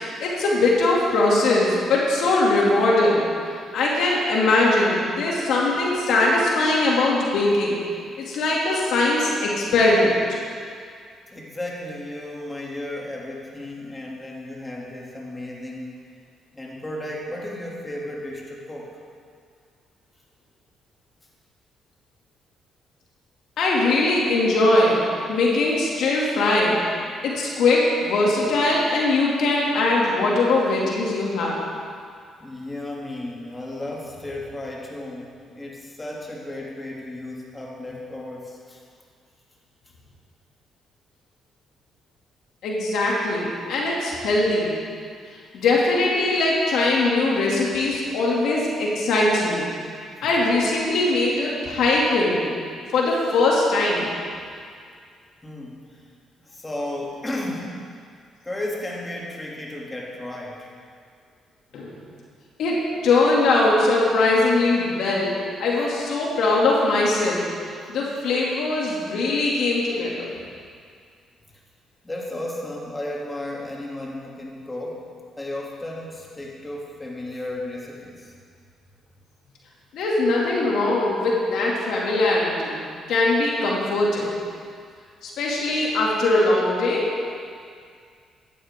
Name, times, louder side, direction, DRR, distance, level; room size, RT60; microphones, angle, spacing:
voice 1, 0.2-3.2 3.7-7.8 8.3-10.2 23.6-25.0 25.3-26.8 27.2-31.6 42.6-44.7 45.5-49.7 50.2-52.5 52.9-54.1 61.7-61.9 62.6-67.4 67.9-70.3 79.9-82.8 83.1-84.3 85.2-87.2, left 2 dB, 75° left, -4 dB, 2.7 m, -21 dB
voice 2, 11.3-16.0 16.5-18.9 32.4-38.8 55.4-56.0 56.4-57.8 58.4-60.7 72.0-75.0 75.4-78.3, left 1 dB, 20° left, -3 dB, 2.9 m, -34 dB
15.5 x 12.5 x 3.8 m, 2.2 s
supercardioid pair, 70°, 0 cm